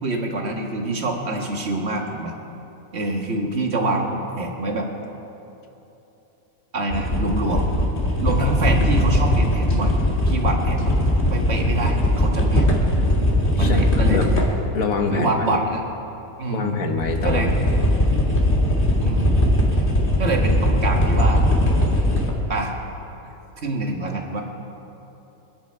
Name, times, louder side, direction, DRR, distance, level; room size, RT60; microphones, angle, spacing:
voice 1, 0.0-2.3 2.9-4.9 6.7-7.7 8.2-9.9 10.3-10.9 11.3-12.7 13.5-14.2 15.1-15.8 16.4-16.9 17.2-17.5 19.0-19.6 20.2-21.4 22.5-22.7 23.6-24.4, right 2 dB, 45° right, 1 dB, 1.9 m, -25 dB
sound 1, 6.9-14.7 17.0-22.3, left 1 dB, 35° left, 2.2 m, -20 dB
voice 2, 14.1-15.6 16.5-18.1 23.2-23.3, left 4 dB, 65° left, 4 dB, 1.8 m, -26 dB
26.5 x 10.5 x 4.6 m, 3.0 s
omnidirectional pair, 1.6 m